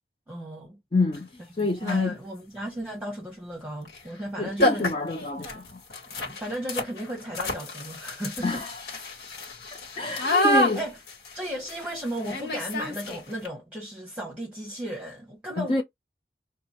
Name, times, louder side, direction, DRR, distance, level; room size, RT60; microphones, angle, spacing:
voice 1, 0.3-0.8 1.6-4.9 6.1-8.7 9.9-11.0 11.3-15.8, equal, 10° right, 1.0 m, -35 dB
voice 2, 0.9-1.3 1.6-2.2 4.4-5.8 8.4-8.8 10.0-10.8 15.6-15.8, left 3 dB, 30° left, 0.5 m, -27 dB
sound 1, 1.1-1.2 1.8-2.1 3.8-4.0 4.3-4.4 4.6-13.5, left 1 dB, 65° left, 1.5 m, -29 dB
5.8 x 2.3 x 2.9 m
head